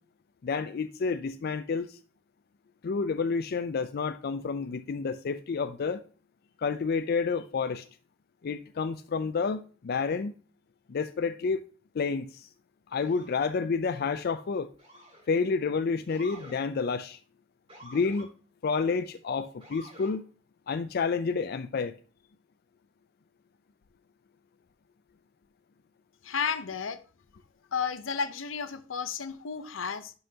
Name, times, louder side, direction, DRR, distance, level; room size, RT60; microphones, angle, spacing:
voice 1, 0.4-2.0 2.8-6.0 6.6-7.9 8.4-10.3 10.9-11.6 11.9-12.5 12.9-14.7 15.3-17.2 17.8-18.3 18.6-20.2 20.7-22.0, left 5 dB, 55° left, 0.4 m, -29 dB
Motor vehicle (road) / Siren, 13.0-13.4 14.8-15.3 16.1-16.6 17.7-18.3 19.6-20.1, right 1 dB, 30° right, 3.5 m, -49 dB
voice 2, 26.2-27.0 27.7-30.1, left 6 dB, 85° left, 0.7 m, -32 dB
11.0 x 5.5 x 2.8 m
head